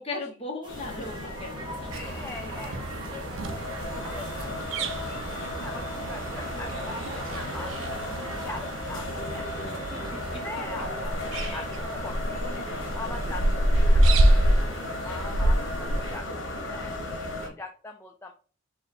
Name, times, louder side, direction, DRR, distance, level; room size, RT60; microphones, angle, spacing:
voice 1, 0.0-1.9 4.1-4.3 9.9-10.4 11.3-11.7, left 3 dB, 30° left, -1 dB, 1.2 m, -38 dB
sound 1, 0.6-8.7, equal, 25° right, 0.8 m, -42 dB
sound 2, 0.7-17.5, left 1 dB, 75° left, 1.1 m, -35 dB
voice 2, 1.9-3.2 3.9-4.5 5.1-9.7 10.4-18.3, left 3 dB, 10° left, 3 dB, 0.3 m, -43 dB
sound 3, 1.9-16.2, right 1 dB, 80° right, 0.5 m, -27 dB
3.9 x 2.4 x 4.1 m, 0.39 s
head